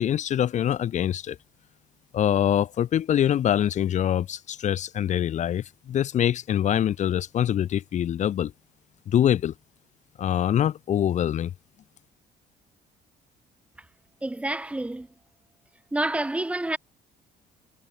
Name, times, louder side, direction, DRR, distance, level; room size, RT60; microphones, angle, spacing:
voice 1, 0.0-1.4 2.1-8.5 9.1-9.5 10.2-11.5, left 10 dB, 45° left, 0.6 m, -24 dB
voice 2, 14.2-15.1 15.9-16.8, right 1 dB, 5° right, 0.5 m, -28 dB
cardioid pair, 110°, 17 cm